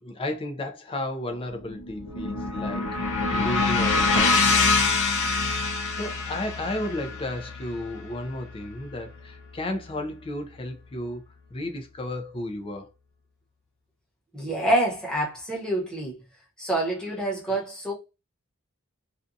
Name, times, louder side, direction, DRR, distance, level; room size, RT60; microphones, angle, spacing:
voice 1, 0.0-2.9 3.3-4.7 5.9-11.2 11.5-12.9 17.5-17.6, left 1 dB, 25° left, 0.4 m, -33 dB
sound 1, 1.5-9.8, left 3 dB, 70° left, 0.6 m, -26 dB
voice 2, 14.3-16.2 16.6-17.9, right 1 dB, 5° left, 1.0 m, -27 dB
2.5 x 2.3 x 2.6 m
head